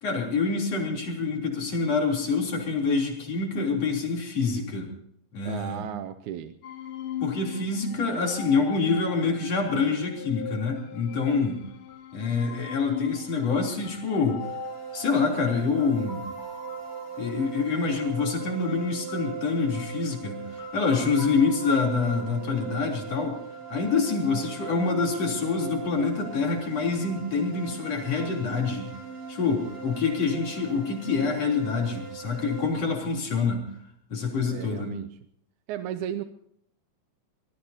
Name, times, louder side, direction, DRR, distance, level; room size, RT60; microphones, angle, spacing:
voice 1, 0.0-4.9 5.3-5.8 7.2-11.6 12.1-14.4 14.9-16.2 17.2-23.4 23.7-28.9 29.3-33.6 34.1-35.0, left 4 dB, 55° left, 0 dB, 4.5 m, -26 dB
voice 2, 5.5-6.6 34.5-35.1 35.7-36.2, right 10 dB, 80° right, 9 dB, 2.1 m, -34 dB
sound 1, 6.6-15.6, left 11 dB, 90° left, 2.8 m, -40 dB
sound 2, 11.9-23.7, left 2 dB, 40° right, 6.5 m, -48 dB
sound 3, 14.4-32.7, right 7 dB, 60° right, 4.4 m, -40 dB
25.0 x 20.5 x 2.8 m, 0.71 s
omnidirectional pair, 3.5 m